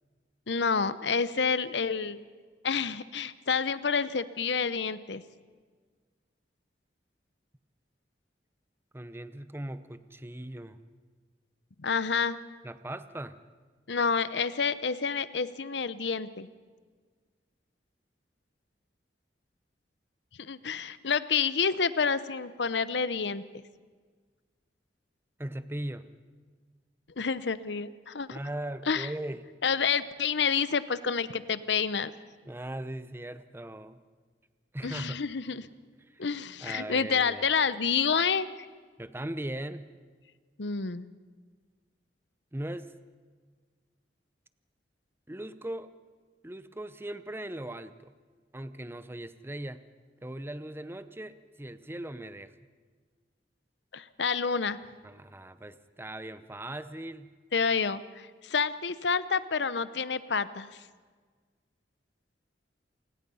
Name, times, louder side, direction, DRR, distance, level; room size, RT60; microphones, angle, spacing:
voice 1, 0.5-2.2 2.6-5.2 11.8-12.4 13.9-16.5 20.4-23.4 27.2-28.4 28.9-29.1 29.6-32.1 34.8-35.7 36.2-38.5 40.6-41.0 53.9-54.8 57.5-60.7, left 5 dB, 75° left, 15 dB, 0.8 m, -28 dB
voice 2, 8.9-10.8 12.6-13.4 25.4-26.1 28.3-29.5 32.4-34.0 34.7-35.2 36.1-36.3 36.6-37.5 39.0-39.9 42.5-42.9 45.3-45.9 46.4-48.1 48.5-49.8 50.2-52.5 55.0-57.3, right 1 dB, 15° right, 12 dB, 0.7 m, -39 dB
27.5 x 19.0 x 5.6 m, 1.5 s
head